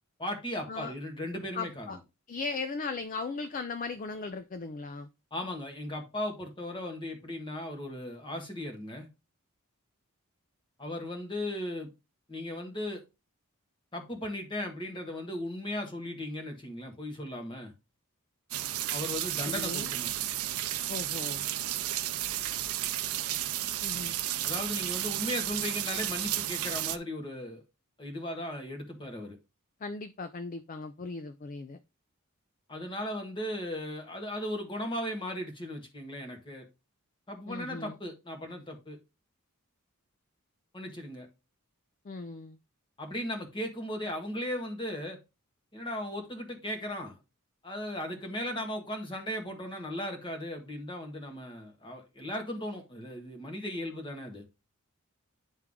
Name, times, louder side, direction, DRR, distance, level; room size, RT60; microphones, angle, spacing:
voice 1, 0.2-2.0 5.3-9.1 10.8-11.9 12.3-13.0 13.9-17.7 18.9-20.2 24.4-27.6 28.0-29.4 32.7-36.7 37.3-39.0 40.7-41.3 43.0-45.2 45.7-47.2 47.6-54.4, left 1 dB, 20° left, 1.5 m, -37 dB
voice 2, 1.5-2.0 2.3-5.1 19.4-19.9 20.9-21.5 23.8-24.2 29.8-31.8 37.5-38.0 42.0-42.6, left 4 dB, 35° left, 0.4 m, -37 dB
sound 1, 18.5-27.0, right 13 dB, 80° right, 0.5 m, -33 dB
9.6 x 3.5 x 3.6 m
head